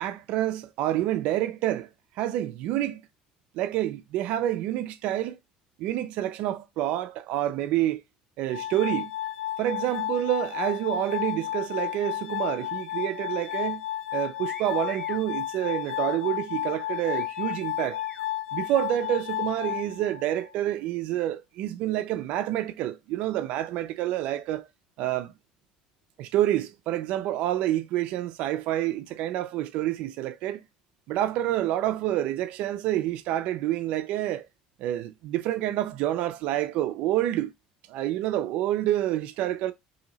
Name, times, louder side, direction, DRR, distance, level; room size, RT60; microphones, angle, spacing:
voice 1, 0.0-1.9 2.2-3.0 3.5-5.4 5.8-8.0 8.4-9.1 9.6-13.8 14.1-18.0 18.5-24.7 25.0-25.3 26.2-30.6 31.1-34.4 34.8-37.5 37.9-39.7, right 13 dB, 65° right, 0.4 m, -28 dB
Glass, 8.5-20.5, left 14 dB, 75° left, 0.6 m, -32 dB
sound 1, 14.5-15.3 16.8-18.2, left 3 dB, 20° left, 0.7 m, -46 dB
2.9 x 2.7 x 3.9 m
cardioid pair, 145°, 2 cm